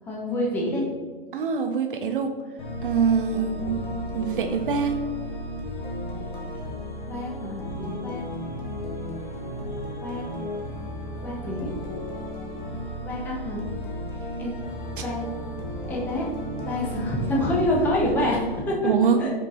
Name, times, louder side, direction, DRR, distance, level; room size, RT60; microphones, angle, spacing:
voice 1, 0.1-0.8 3.3-3.4 7.0-8.3 10.0-10.3 11.2-11.7 13.0-13.7 14.4-14.5 15.0-15.3 15.9-16.2 16.6-18.9 19.2-19.3, left 1 dB, 5° left, -3 dB, 0.4 m, -27 dB
voice 2, 1.3-2.3 2.8-3.8 4.1-5.0 18.8-19.2, right 6 dB, 60° right, 5 dB, 0.4 m, -24 dB
sound 1, 2.6-18.6, equal, 55° left, 0.9 m, -34 dB
5.4 x 2.5 x 3.0 m, 1.5 s
figure-of-eight pair, 105°, 30 cm